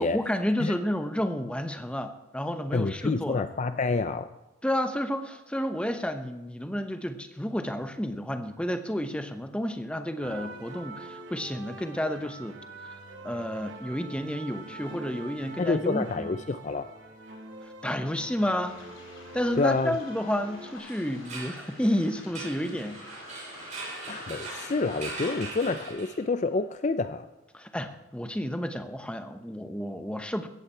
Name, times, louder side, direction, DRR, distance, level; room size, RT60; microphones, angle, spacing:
voice 1, 0.0-3.4 4.6-12.6 13.2-16.3 17.8-18.8 19.3-23.4 27.5-30.5, equal, 5° left, 8 dB, 0.8 m, -31 dB
voice 2, 2.7-4.3 15.6-16.9 19.6-20.0 24.1-27.3, left 3 dB, 35° left, 11 dB, 0.4 m, -28 dB
sound 1, 10.2-20.8, right 2 dB, 60° right, 2.8 m, -44 dB
Waves surf, 18.6-25.9, left 2 dB, 75° left, 3.5 m, -49 dB
sound 2, 20.8-26.5, right 2 dB, 35° right, 6.0 m, -41 dB
17.0 x 14.5 x 4.4 m, 1.0 s
head